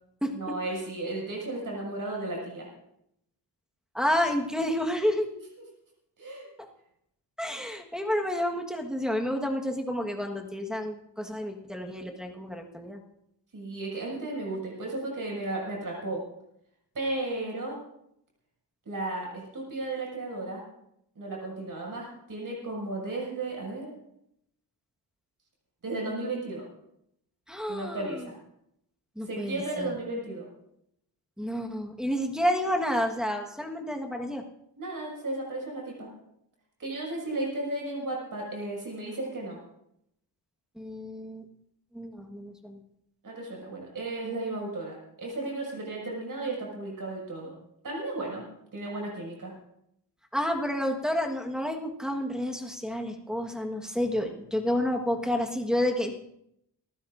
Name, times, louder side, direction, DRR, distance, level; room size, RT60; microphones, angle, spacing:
voice 1, 0.3-2.7 5.3-5.4 6.2-6.5 13.5-16.2 16.9-17.8 18.8-20.6 21.1-23.9 25.8-26.7 27.7-28.4 29.2-30.5 34.8-36.1 36.8-39.6 43.2-47.5 47.8-48.4 48.7-49.5, right 2 dB, 50° right, -2 dB, 6.4 m, -34 dB
voice 2, 3.9-5.3 7.4-13.0 27.5-28.2 29.2-29.9 31.4-34.4 40.8-41.4 41.9-42.8 50.3-56.1, left 1 dB, ahead, 1 dB, 1.5 m, -30 dB
28.0 x 16.0 x 2.6 m, 0.76 s
wide cardioid pair, 150°, 40 cm